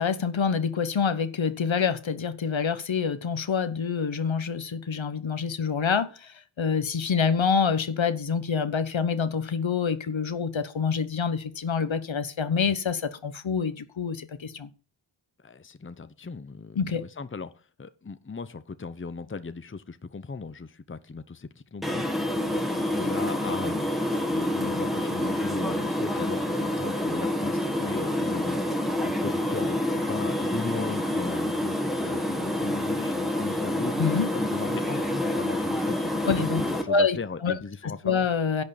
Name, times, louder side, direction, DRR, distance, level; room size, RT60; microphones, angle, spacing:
voice 1, 0.0-14.7 16.8-17.0 34.0-34.3 36.3-37.2 37.4-37.6 38.0-38.6, left 6 dB, 70° left, 1.0 m, -26 dB
voice 2, 15.4-17.5 17.8-33.9 34.3-38.3, left 4 dB, 25° left, 0.8 m, -37 dB
sound 1, 21.8-36.8, left 1 dB, ahead, 1.8 m, -28 dB
11.0 x 6.4 x 7.1 m
wide cardioid pair, 85°, 48 cm